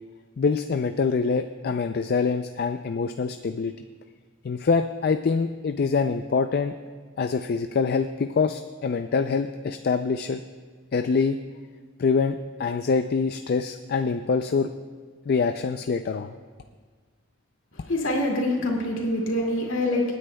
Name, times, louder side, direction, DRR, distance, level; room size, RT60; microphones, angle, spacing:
voice 1, 0.4-3.7 4.4-6.7 7.2-10.4 10.9-11.4 12.0-14.7 15.3-16.3, left 5 dB, 50° left, 8 dB, 0.4 m, -25 dB
voice 2, 17.8-20.1, left 1 dB, 70° left, -1 dB, 2.3 m, -25 dB
26.5 x 9.7 x 2.2 m, 1.5 s
head